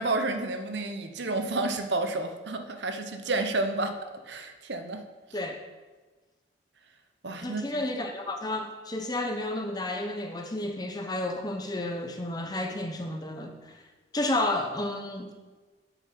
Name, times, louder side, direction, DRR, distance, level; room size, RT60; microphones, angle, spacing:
voice 1, 0.0-4.0 4.3-5.0 7.2-7.8, right 2 dB, 70° right, 7 dB, 0.9 m, -30 dB
voice 2, 7.4-13.8 14.1-15.3, left 1 dB, 20° left, 4 dB, 0.9 m, -31 dB
8.4 x 7.2 x 5.9 m, 1.3 s
head